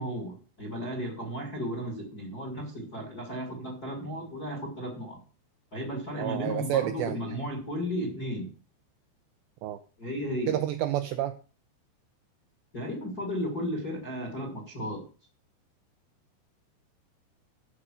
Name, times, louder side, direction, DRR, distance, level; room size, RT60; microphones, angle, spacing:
voice 1, 0.0-5.2 5.7-8.5 10.0-10.6 12.7-15.1, equal, 40° left, 2 dB, 1.4 m, -34 dB
voice 2, 6.2-7.2 9.6-9.8 10.5-11.4, right 12 dB, 85° right, 8 dB, 2.5 m, -29 dB
13.5 x 5.2 x 6.3 m, 0.36 s
omnidirectional pair, 5.7 m